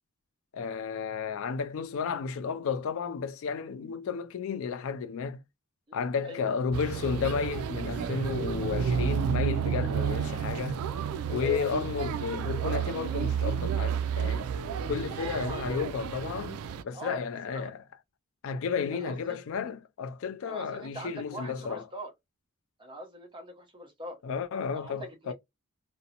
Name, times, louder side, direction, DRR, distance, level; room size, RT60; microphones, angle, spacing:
voice 1, 0.5-5.4 5.9-10.8 11.3-14.5 14.8-17.8 18.4-21.9 24.2-25.3, left 6 dB, 65° left, 0.4 m, -32 dB
sound 1, 6.7-16.8, right 8 dB, 80° right, 0.3 m, -31 dB
voice 2, 11.4-11.7 15.2-15.8 16.9-17.7 18.9-19.4 20.4-22.1 22.8-24.2 24.7-25.3, equal, 20° right, 0.8 m, -42 dB
2.5 x 2.0 x 2.8 m
head